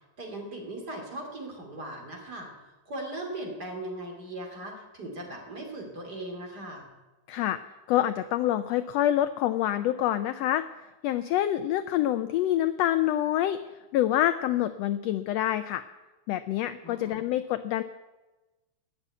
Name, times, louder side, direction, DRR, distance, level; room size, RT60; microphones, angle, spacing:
voice 1, 0.2-2.5 2.9-6.9 16.8-17.2, right 1 dB, 35° right, 1 dB, 3.1 m, -38 dB
voice 2, 7.3-7.6 7.9-10.6 11.0-13.6 13.9-15.8 16.3-17.8, left 12 dB, 80° left, 12 dB, 1.5 m, -26 dB
20.0 x 7.0 x 9.2 m, 1.1 s
omnidirectional pair, 3.5 m